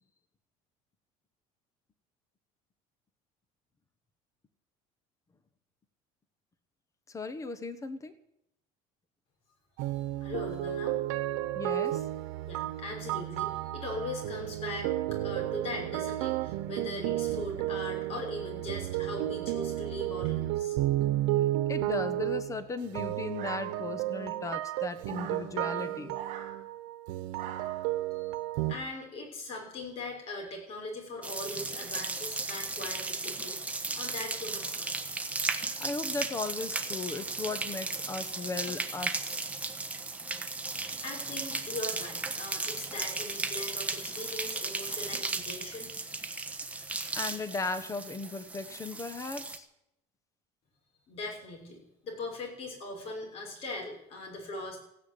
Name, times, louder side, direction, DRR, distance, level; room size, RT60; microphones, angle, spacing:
voice 1, 7.1-8.1 11.5-12.1 21.7-26.2 35.8-39.4 46.7-49.7, left 3 dB, 20° left, 12 dB, 1.3 m, -37 dB
sound 1, 9.8-28.7, right 14 dB, 90° right, 1.1 m, -32 dB
voice 2, 10.2-11.0 12.5-20.8 28.1-28.3 28.7-34.9 41.0-45.9 51.1-54.8, left 2 dB, 40° left, 2 dB, 6.3 m, -40 dB
sound 2, 23.4-24.1 25.0-25.5 26.1-26.5 27.3-27.9, right 10 dB, 55° right, 3.9 m, -43 dB
sound 3, 31.2-49.6, right 3 dB, 10° right, 1.2 m, -36 dB
15.5 x 9.8 x 9.6 m, 0.80 s
cardioid pair, 150°, 15 cm